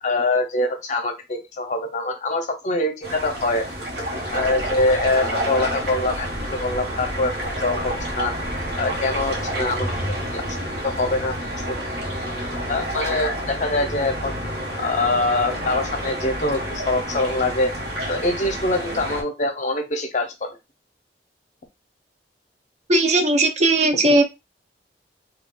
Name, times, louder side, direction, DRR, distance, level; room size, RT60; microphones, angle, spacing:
voice 1, 0.0-3.7 4.3-8.3 8.8-9.9 10.3-10.4 10.8-11.4 11.7-11.8 12.1-12.2 12.7-14.4 14.8-17.7 18.1-20.5, left 2 dB, 45° left, 6 dB, 0.6 m, -24 dB
sound 1, 3.0-19.2, equal, 70° right, 1.0 m, -29 dB
voice 2, 22.9-24.2, right 2 dB, 40° right, 7 dB, 0.4 m, -17 dB
2.3 x 2.3 x 3.7 m, 0.24 s
head